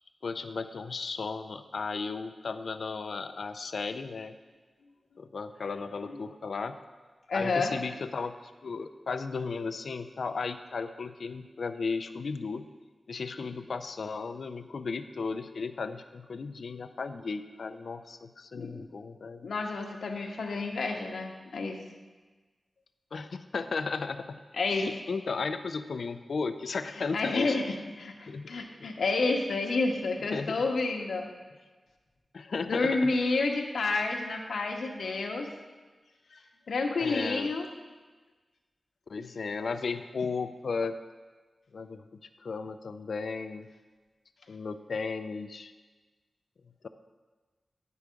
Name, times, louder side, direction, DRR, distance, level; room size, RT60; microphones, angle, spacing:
voice 1, 0.2-4.3 5.2-6.8 7.3-8.4 8.6-12.7 13.1-19.5 23.1-24.4 24.7-27.6 28.3-28.5 28.8-28.9 30.3-30.6 32.3-33.1 37.0-37.5 39.1-41.0 41.7-42.0 42.4-43.7 44.5-45.7 46.8-46.9, left 4 dB, 65° left, 10 dB, 0.4 m, -35 dB
voice 2, 7.3-7.7 18.5-18.8 19.4-21.8 24.5-24.9 27.1-27.6 28.0-31.3 32.7-35.5 36.3-36.4 36.7-37.7, left 3 dB, 90° left, 2 dB, 0.8 m, -29 dB
9.5 x 4.6 x 5.1 m, 1.3 s
wide cardioid pair, 145°, 0 cm